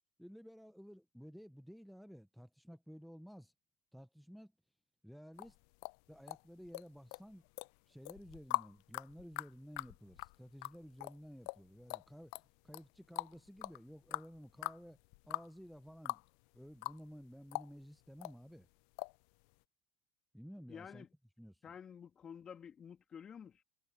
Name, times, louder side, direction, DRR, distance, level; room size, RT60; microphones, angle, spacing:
voice 1, 0.2-3.5 3.9-4.5 5.0-5.6 6.1-7.4 7.9-15.0 15.2-16.2 16.5-18.7 20.3-21.1 21.4-21.7, equal, ahead, 1.3 m, -54 dB
sound 1, 5.4-6.8 7.1-7.7 8.1-16.3 16.5-17.2 17.5-18.4 19.0-19.2 19.5-19.6, left 29 dB, 60° left, 1.0 m, -42 dB
voice 2, 20.7-21.1 21.6-23.6, left 7 dB, 30° left, 3.6 m, -51 dB
hypercardioid pair, 75°, 2 cm